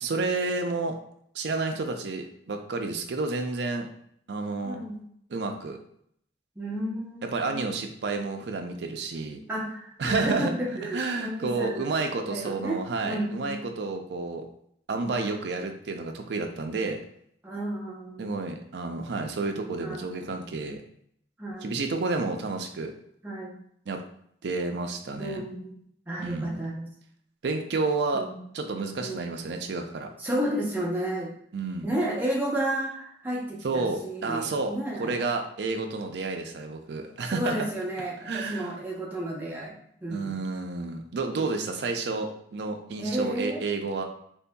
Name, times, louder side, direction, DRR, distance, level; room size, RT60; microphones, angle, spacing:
voice 1, 0.0-1.0 1.3-3.9 4.3-4.8 5.3-5.8 7.2-9.4 10.0-10.5 10.8-14.4 14.9-17.0 18.2-20.8 21.6-22.9 23.9-24.0 24.4-25.4 26.2-26.6 27.4-28.3 28.5-30.1 31.5-31.9 33.6-34.7 35.0-37.7 38.3-38.7 40.1-44.0, right 3 dB, 75° right, 4 dB, 0.4 m, -30 dB
voice 2, 4.6-5.0 6.6-7.6 9.5-11.9 12.3-13.6 17.4-18.3 19.8-20.0 21.4-21.7 23.2-23.6 25.2-25.7 26.1-26.9 28.1-28.4 29.0-29.2 30.2-31.3 31.8-35.2 37.2-40.5 43.0-43.6, right 1 dB, 10° right, -3 dB, 0.7 m, -32 dB
3.7 x 2.6 x 2.2 m, 0.68 s
head